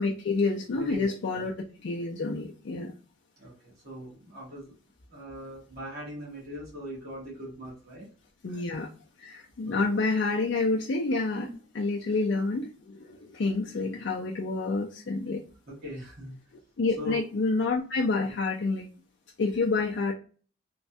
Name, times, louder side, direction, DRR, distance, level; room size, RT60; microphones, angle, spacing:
voice 1, 0.0-1.5 1.8-2.9 8.4-8.9 9.2-11.5 11.7-15.4 16.8-18.9 19.4-20.1, left 3 dB, 65° left, 0 dB, 0.4 m, -28 dB
voice 2, 0.7-1.5 3.4-4.8 5.1-8.1 8.5-8.6 9.6-9.9 11.4-11.5 15.7-16.4 17.0-17.2 18.2-18.3, equal, 50° right, -5 dB, 1.3 m, -41 dB
3.1 x 2.2 x 2.6 m, 0.38 s
head